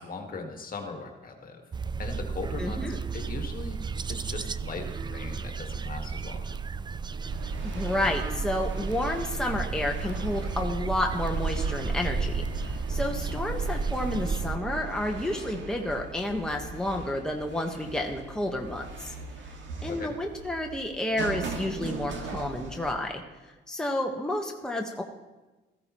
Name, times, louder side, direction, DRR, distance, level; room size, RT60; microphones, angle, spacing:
voice 1, 0.0-1.6 2.0-2.8 3.1-6.5 19.9-20.1, left 4 dB, 45° left, 3 dB, 1.8 m, -39 dB
sound 1, 1.7-14.6, right 5 dB, 20° right, 0.4 m, -33 dB
voice 2, 2.6-3.0 7.6-19.1 19.8-23.2 23.7-25.0, left 1 dB, 5° left, 1 dB, 1.3 m, -30 dB
sound 2, 7.3-22.9, right 4 dB, 70° right, 2.1 m, -37 dB
15.5 x 14.5 x 3.1 m, 1.1 s
cardioid pair, 90°, 20 cm